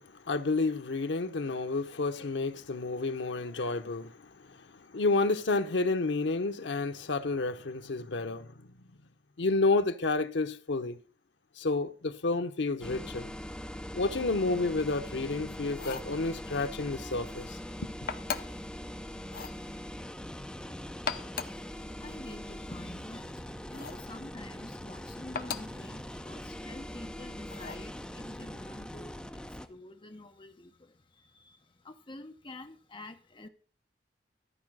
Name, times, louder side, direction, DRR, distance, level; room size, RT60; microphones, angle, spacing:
voice 1, 0.0-4.1 4.4-8.7 9.4-11.0 11.6-13.3 13.9-17.6, left 3 dB, 85° left, 0.8 m, -30 dB
sound 1, 12.8-29.7, equal, 5° left, 0.6 m, -42 dB
sound 2, 15.7-16.2 18.1-18.7 19.3-19.6 20.9-21.6 23.7-24.1 25.3-25.8 27.5-27.9, left 6 dB, 55° left, 0.7 m, -38 dB
voice 2, 21.5-33.5, left 2 dB, 30° left, 1.0 m, -48 dB
13.0 x 4.7 x 6.2 m
head